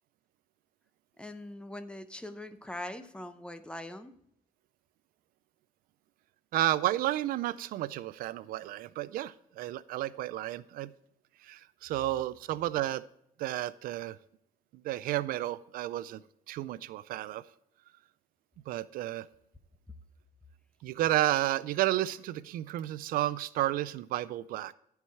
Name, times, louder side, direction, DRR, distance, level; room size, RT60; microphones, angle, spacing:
voice 1, 1.2-4.1, left 1 dB, 5° left, 9 dB, 0.8 m, -42 dB
voice 2, 6.5-10.9 11.4-13.0 13.4-14.2 14.8-16.2 16.5-17.4 18.7-19.3 20.8-24.7, right 14 dB, 85° right, 17 dB, 0.4 m, -32 dB
14.0 x 4.8 x 4.2 m, 0.75 s
cardioid pair, 120°, 14 cm